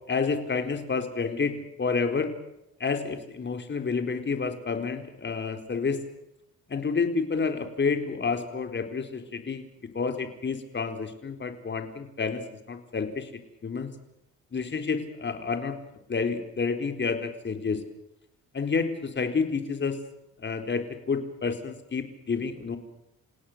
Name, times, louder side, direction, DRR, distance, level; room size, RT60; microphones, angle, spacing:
voice 1, 0.1-2.3 2.8-6.0 6.7-9.6 9.9-13.3 13.6-13.9 14.5-15.8 16.1-17.8 18.5-20.0 20.4-22.8, left 5 dB, 40° left, 6 dB, 4.1 m, -29 dB
29.0 x 17.0 x 8.0 m, 0.85 s
cardioid pair, 90°, 30 cm